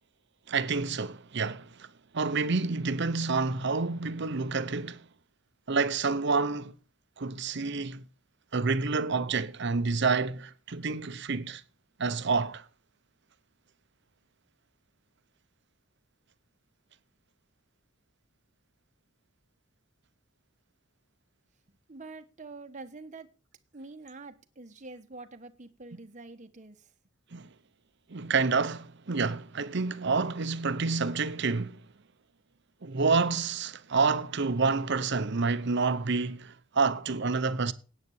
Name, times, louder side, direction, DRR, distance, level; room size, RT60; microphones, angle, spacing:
voice 1, 0.5-1.9 2.1-5.0 5.7-6.7 7.2-8.0 8.5-11.6 12.0-12.6 27.3-27.5 28.1-31.8 32.8-37.7, right 4 dB, 60° right, 0.8 m, -28 dB
voice 2, 21.9-23.3 23.7-26.9, right 3 dB, 40° right, 1.1 m, -46 dB
9.6 x 8.9 x 7.1 m
head